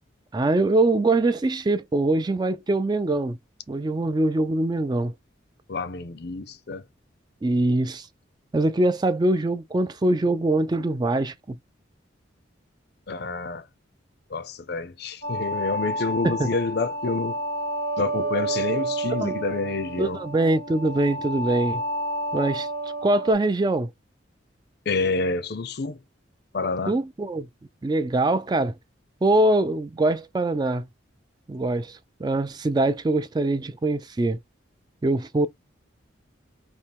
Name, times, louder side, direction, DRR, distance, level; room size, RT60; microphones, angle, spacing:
voice 1, 0.3-3.4 3.7-5.1 7.4-8.1 8.5-11.6 16.2-16.5 19.2-19.3 20.0-21.8 22.3-22.7 23.0-23.9 26.9-27.5 27.8-28.7 29.2-30.8 31.5-34.4 35.0-35.5, right 2 dB, 20° right, 0.3 m, -23 dB
voice 2, 5.7-6.8 13.1-13.7 14.3-17.4 18.0-20.2 24.9-26.0 26.5-27.0, left 3 dB, 55° left, 0.5 m, -28 dB
sound 1, 15.2-23.3, right 1 dB, 85° right, 1.2 m, -30 dB
4.3 x 2.9 x 3.4 m
head